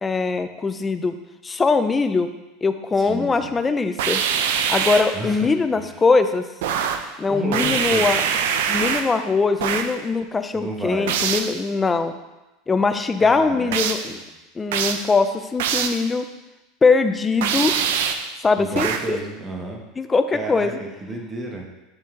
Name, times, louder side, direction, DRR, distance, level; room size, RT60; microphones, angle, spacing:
voice 1, 0.0-1.2 1.4-2.3 2.6-4.2 4.6-6.5 7.2-8.2 8.7-12.2 12.7-14.2 14.6-16.3 16.8-17.7 18.4-19.2 20.0-20.8, left 4 dB, 15° left, 9 dB, 0.4 m, -21 dB
voice 2, 3.0-3.6 5.1-5.9 7.3-8.1 10.5-11.2 13.2-13.8 14.1-14.2 18.6-19.8 20.3-21.7, right 2 dB, 15° right, 1 dB, 1.2 m, -31 dB
sound 1, 4.0-5.2 6.6-7.1 7.5-9.2 9.6-10.0 11.1-11.6 13.7-14.1 14.7-15.1 15.6-16.1 17.4-18.3 18.8-19.2, right 7 dB, 85° right, 0.6 m, -23 dB
10.5 x 4.3 x 3.7 m, 1.0 s
supercardioid pair, 145°, 0 cm